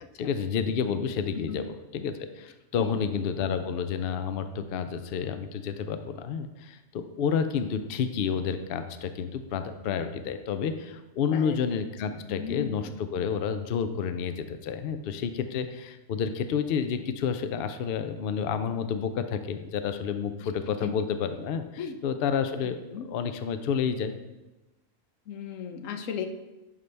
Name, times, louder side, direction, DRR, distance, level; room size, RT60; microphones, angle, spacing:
voice 1, 0.2-24.1, left 7 dB, 60° left, 9 dB, 0.6 m, -30 dB
voice 2, 12.1-12.9 20.4-20.5 20.8-20.9 21.8-22.0 22.9-23.1 25.3-26.3, left 7 dB, 80° left, 7 dB, 1.1 m, -36 dB
11.0 x 5.3 x 3.3 m, 1.1 s
omnidirectional pair, 1.3 m